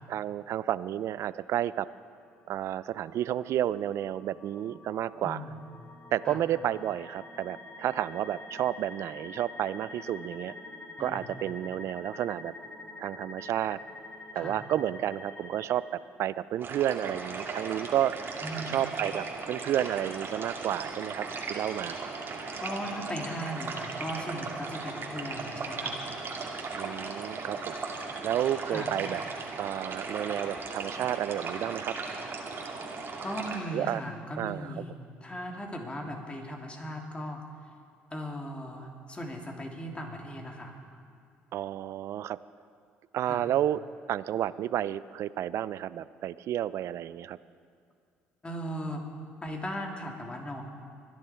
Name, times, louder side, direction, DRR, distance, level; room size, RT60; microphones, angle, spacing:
voice 1, 0.1-1.9 2.5-5.5 6.1-10.5 11.0-12.5 13.0-13.8 14.3-18.1 18.7-22.0 26.8-27.8 28.2-29.2 29.6-32.0 33.7-34.0 34.4-34.7 41.5-42.4 43.1-43.8 44.1-47.4, right 11 dB, 60° right, 18 dB, 0.4 m, -31 dB
sound 1, 2.4-15.7, left 3 dB, 50° left, 2.6 m, -47 dB
voice 2, 5.2-5.6 6.3-6.4 11.0-11.3 14.3-14.6 18.4-18.8 22.6-26.0 28.7-28.9 33.2-34.9 35.2-37.4 38.1-40.8 43.3-43.5 48.4-49.0 49.4-50.6, equal, 20° left, 1 dB, 3.0 m, -38 dB
sound 2, 16.6-33.6, right 4 dB, 45° right, 2.5 m, -37 dB
24.5 x 11.0 x 4.5 m, 2.2 s
hypercardioid pair, 60°, 5 cm